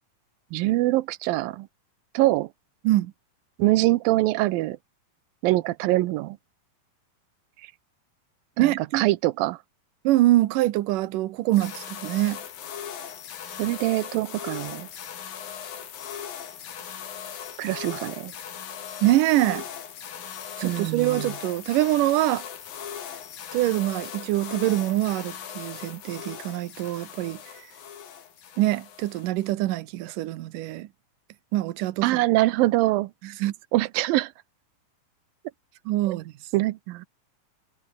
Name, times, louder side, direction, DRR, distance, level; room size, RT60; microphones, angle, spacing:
voice 1, 0.5-1.7 2.1-2.5 3.6-4.8 5.4-6.4 8.6-9.6 13.6-14.9 17.6-18.3 20.6-21.4 32.0-33.1 33.7-34.3 36.1-36.2 36.5-37.1, right 18 dB, 90° right, 2.5 m, -24 dB
voice 2, 8.6-9.0 10.0-12.4 19.0-19.7 20.6-22.5 23.5-27.4 28.6-30.9 31.5-32.2 33.2-33.5 35.9-36.3, right 16 dB, 75° right, 2.5 m, -24 dB
sound 1, 11.5-29.5, left 8 dB, 85° left, 4.5 m, -39 dB
omnidirectional pair, 4.0 m